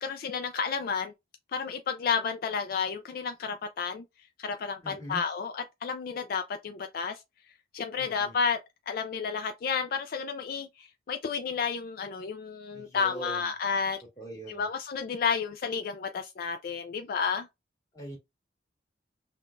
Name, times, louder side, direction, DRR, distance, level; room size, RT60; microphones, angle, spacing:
voice 1, 0.0-1.1 1.5-4.0 4.4-7.2 7.7-8.6 8.9-14.0 14.5-17.5, left 6 dB, 50° left, 0.3 m, -31 dB
voice 2, 4.8-5.2 8.0-8.4 12.7-13.5 14.2-14.7 17.9-18.2, right 1 dB, 20° left, 1.6 m, -42 dB
5.5 x 2.2 x 2.5 m
head